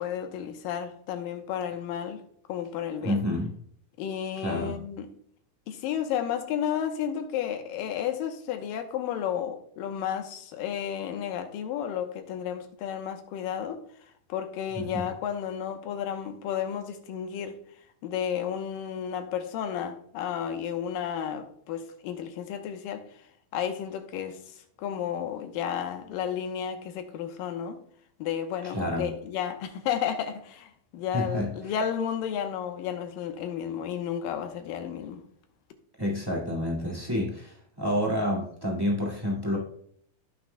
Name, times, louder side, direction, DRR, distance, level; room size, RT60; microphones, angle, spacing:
voice 1, 0.0-2.2 2.5-3.3 4.0-5.1 5.7-13.8 14.3-17.6 18.0-23.0 23.5-24.4 24.8-27.8 28.2-35.2, left 9 dB, 90° left, 2.6 m, -32 dB
voice 2, 3.0-3.5 4.4-4.8 14.7-15.0 28.6-29.1 31.1-31.7 36.0-39.6, left 1 dB, 15° right, 0.8 m, -29 dB
17.0 x 6.1 x 2.2 m
omnidirectional pair, 3.8 m